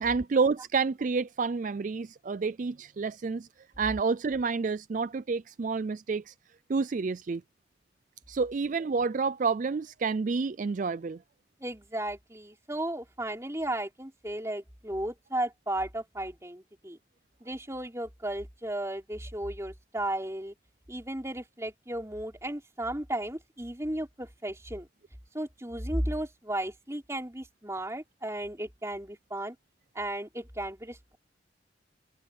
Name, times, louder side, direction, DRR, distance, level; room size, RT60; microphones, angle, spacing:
voice 1, 0.0-3.5 3.8-6.3 6.7-7.4 8.3-11.2, right 4 dB, 40° right, 0.4 m, -29 dB
voice 2, 11.6-17.0 17.4-20.5 20.9-24.9 25.3-29.6 29.9-31.2, right 1 dB, 15° right, 4.5 m, -35 dB
open air
head